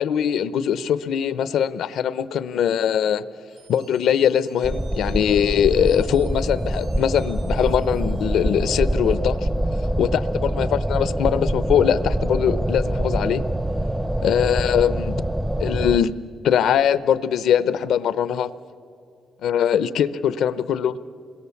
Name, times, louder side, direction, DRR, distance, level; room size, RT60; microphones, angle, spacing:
voice 1, 0.0-3.2 3.7-9.5 10.0-13.4 14.2-15.2 15.6-16.1 16.4-18.5 19.4-21.0, left 9 dB, 80° left, 15 dB, 0.7 m, -21 dB
sound 1, 3.5-9.2, right 5 dB, 75° right, 6.7 m, -54 dB
sound 2, 4.6-16.0, right 1 dB, 10° right, 0.5 m, -25 dB
27.5 x 22.0 x 7.1 m, 2.6 s
cardioid pair, 135°, 0 cm